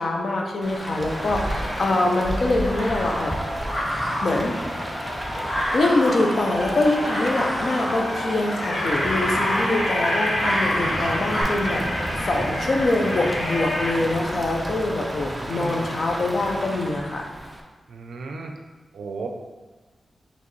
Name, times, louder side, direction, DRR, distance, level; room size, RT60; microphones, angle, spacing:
voice 1, 0.0-3.3 4.2-4.6 5.7-11.8 12.2-17.3, left 2 dB, 50° left, 1 dB, 0.5 m, -24 dB
Rain, 0.6-17.6, right 1 dB, 10° right, 0.4 m, -32 dB
sound 1, 1.5-2.4 2.8-14.0, left 1 dB, 90° left, 0.9 m, -30 dB
sound 2, 1.6-11.4, equal, 5° left, 1.0 m, -30 dB
voice 2, 15.2-15.9 17.9-18.5 18.9-19.3, right 4 dB, 85° right, 3 dB, 0.5 m, -35 dB
4.3 x 3.1 x 3.1 m, 1.3 s
wide cardioid pair, 175°, 0 cm